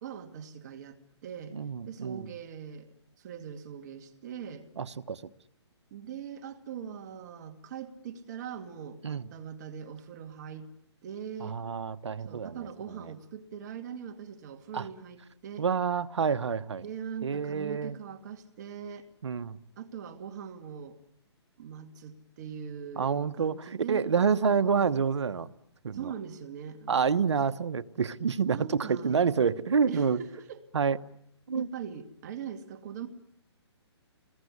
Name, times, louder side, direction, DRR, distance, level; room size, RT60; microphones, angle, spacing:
voice 1, 0.0-1.6 1.8-2.9 3.2-4.7 5.9-10.7 11.0-11.6 12.2-15.7 16.8-19.1 19.8-21.0 21.6-24.0 25.9-27.2 28.5-29.3 29.9-30.6 31.5-33.1, right 7 dB, 40° right, 6 dB, 2.3 m, -41 dB
voice 2, 1.5-2.3 4.8-5.2 9.0-9.2 11.4-12.6 13.0-13.1 14.7-14.9 15.6-16.8 17.2-18.0 19.2-19.6 23.0-25.5 25.8-26.1 26.9-30.2 30.7-31.0 31.5-31.7, right 6 dB, 80° right, 12 dB, 1.2 m, -28 dB
27.5 x 22.0 x 9.7 m, 0.74 s
hypercardioid pair, 155°, 15 cm